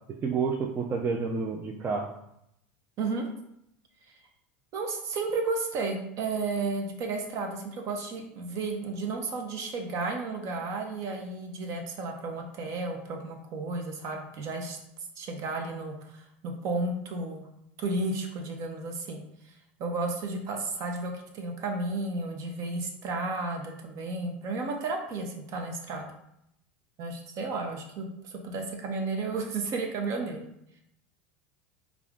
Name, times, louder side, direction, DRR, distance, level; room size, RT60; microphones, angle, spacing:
voice 1, 0.2-2.1, right 5 dB, 30° right, 1 dB, 0.4 m, -29 dB
voice 2, 4.7-14.8 15.2-17.4 17.8-19.2 19.8-26.0 27.0-30.4, right 3 dB, 55° right, 3 dB, 0.8 m, -33 dB
3.5 x 2.5 x 3.5 m, 0.78 s
hypercardioid pair, 100°, 7 cm